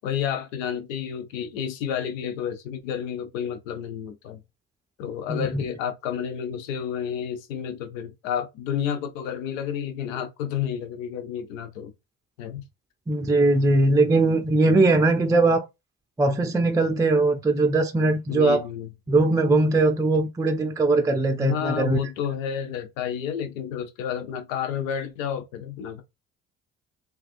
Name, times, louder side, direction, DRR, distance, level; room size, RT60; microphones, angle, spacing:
voice 1, 0.0-4.4 5.0-11.9 12.4-12.6 18.3-18.9 21.1-26.0, left 8 dB, 85° left, 0.6 m, -30 dB
voice 2, 5.3-5.6 13.1-15.6 16.2-18.6 19.1-22.0, right 2 dB, 10° right, 0.5 m, -20 dB
3.3 x 2.2 x 2.5 m
hypercardioid pair, 50°, 38 cm